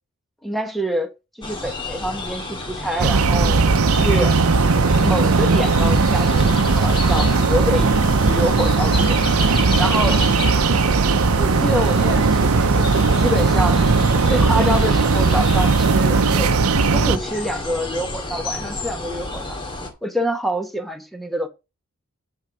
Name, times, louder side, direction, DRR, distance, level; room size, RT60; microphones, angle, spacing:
voice 1, 0.4-3.6 3.9-4.4 5.0-7.9 8.2-9.2 9.8-10.2 11.4-16.5 16.9-19.6 20.0-21.5, equal, ahead, 1.1 m, -26 dB
sound 1, 1.4-19.9, left 2 dB, 25° left, 2.0 m, -31 dB
sound 2, 3.0-17.2, right 4 dB, 85° right, 0.7 m, -17 dB
9.5 x 4.6 x 6.2 m
head